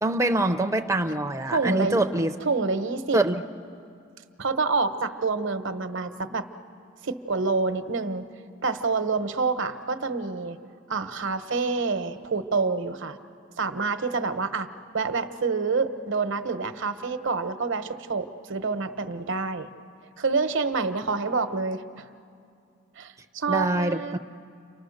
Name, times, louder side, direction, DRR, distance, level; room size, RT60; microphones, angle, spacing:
voice 1, 0.0-2.3 3.1-3.4 23.5-24.2, right 2 dB, 15° right, 6 dB, 0.6 m, -24 dB
voice 2, 1.5-2.0 2.4-3.2 4.4-6.5 7.0-8.3 8.6-10.6 10.9-13.2 13.6-14.7 14.9-19.7 20.2-22.0 23.0-24.2, right 4 dB, 65° right, 10 dB, 1.0 m, -27 dB
29.5 x 24.5 x 6.5 m, 2.4 s
head